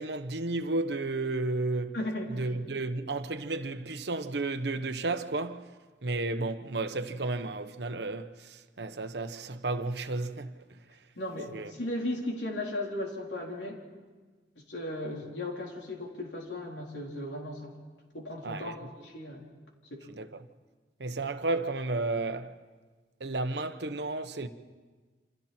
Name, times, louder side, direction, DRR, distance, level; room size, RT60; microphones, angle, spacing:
voice 1, 0.0-2.0 2.3-5.7 6.0-10.6 11.5-11.7 18.4-18.8 20.1-20.4 21.0-22.5 23.2-24.5, right 2 dB, 65° right, 1.0 m, -32 dB
voice 2, 1.9-2.3 11.2-13.8 14.7-17.7 18.1-19.4 19.9-20.1, left 1 dB, 80° left, 4.0 m, -36 dB
28.5 x 26.5 x 4.4 m
head